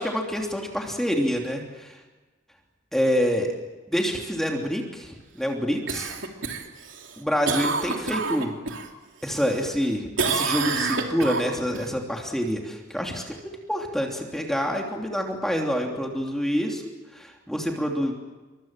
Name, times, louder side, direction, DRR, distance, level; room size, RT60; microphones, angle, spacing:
voice 1, 0.0-2.0 2.9-3.5 3.9-6.2 7.2-8.5 9.2-13.4 13.7-16.8 17.1-18.1, equal, ahead, 1 dB, 2.9 m, -27 dB
Cough, 5.9-8.9 9.3-9.9 10.2-11.9 16.3-16.4, right 4 dB, 75° right, 3.3 m, -28 dB
28.0 x 24.5 x 7.5 m, 1.2 s
head